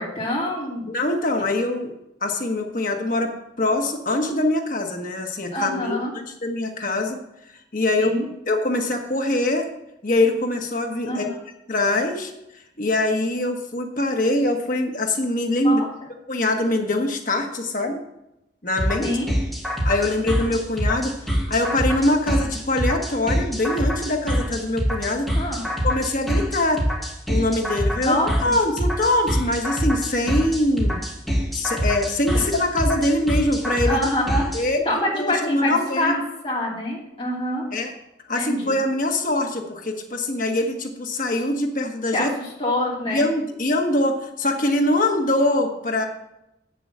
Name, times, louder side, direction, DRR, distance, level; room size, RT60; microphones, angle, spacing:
voice 1, 0.0-0.9 1.4-1.5 5.5-6.1 8.0-8.3 11.1-11.4 15.6-15.9 19.0-19.3 25.3-25.6 28.0-28.5 32.3-32.4 33.8-34.5 34.8-36.2 36.4-37.7 38.3-38.8 42.1-43.3, left 1 dB, 30° left, -4 dB, 3.1 m, -25 dB
voice 2, 0.9-1.9 2.2-3.3 3.6-7.2 7.7-8.1 8.5-9.7 10.0-11.3 11.7-12.3 12.8-15.8 16.3-18.0 18.6-19.1 19.8-25.3 25.8-26.8 27.3-28.2 28.4-31.0 31.5-34.0 34.5-34.8 35.1-36.2 37.7-37.9 38.3-42.3 43.1-46.1, left 1 dB, 50° left, 3 dB, 1.3 m, -23 dB
sound 1, 18.8-34.6, equal, ahead, 2.4 m, -24 dB
8.7 x 7.0 x 7.4 m, 0.86 s
head